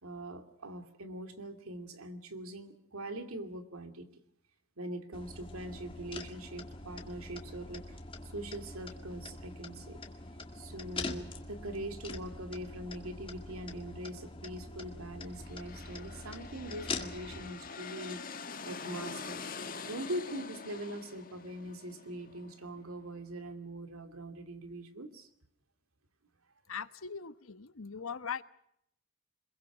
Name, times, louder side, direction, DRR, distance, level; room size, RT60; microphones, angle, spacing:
voice 1, 0.0-4.1 4.8-10.0 10.5-19.4 19.9-25.3, right 1 dB, 85° right, 2.7 m, -42 dB
sound 1, 5.1-17.5, left 3 dB, 25° left, 1.9 m, -44 dB
sound 2, 15.3-23.0, left 4 dB, 40° left, 1.7 m, -45 dB
voice 2, 26.7-28.4, left 6 dB, 75° left, 1.1 m, -40 dB
26.5 x 22.0 x 6.1 m
head